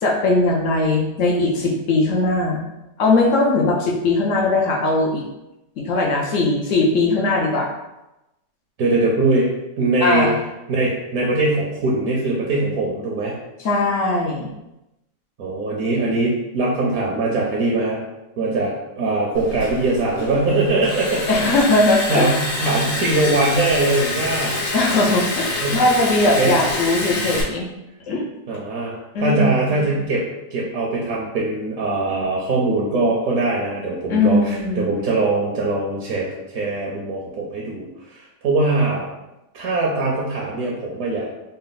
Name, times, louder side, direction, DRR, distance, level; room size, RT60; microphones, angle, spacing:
voice 1, 0.0-2.6 3.0-5.2 5.8-7.7 10.0-10.4 13.6-14.5 21.3-22.4 24.7-27.7 28.1-28.2 29.1-29.9 34.1-34.9, left 2 dB, 65° left, -2 dB, 0.8 m, -19 dB
voice 2, 8.8-9.5 9.8-10.3 10.7-13.3 15.4-18.0 18.4-21.6 22.1-24.6 25.6-25.8 26.4-26.5 28.5-30.2 30.5-39.1 39.5-41.3, right 2 dB, 60° right, -3 dB, 0.9 m, -21 dB
Liquid, 19.3-27.4, left 2 dB, 85° left, 1.8 m, -27 dB
4.1 x 2.0 x 3.9 m, 0.94 s
omnidirectional pair, 1.9 m